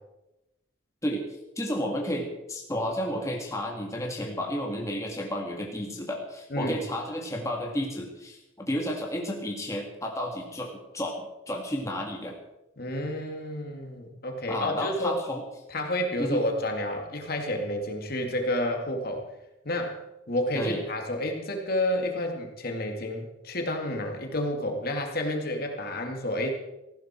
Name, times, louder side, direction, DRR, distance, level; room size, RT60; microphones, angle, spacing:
voice 1, 1.6-10.7 10.9-12.4 14.5-15.4 16.2-16.4 20.5-20.8, equal, 15° left, 0 dB, 2.0 m, -32 dB
voice 2, 12.8-15.2 15.7-19.2 19.6-20.0 20.3-26.5, left 1 dB, 50° left, 3 dB, 2.4 m, -30 dB
18.0 x 15.5 x 4.5 m, 0.93 s
head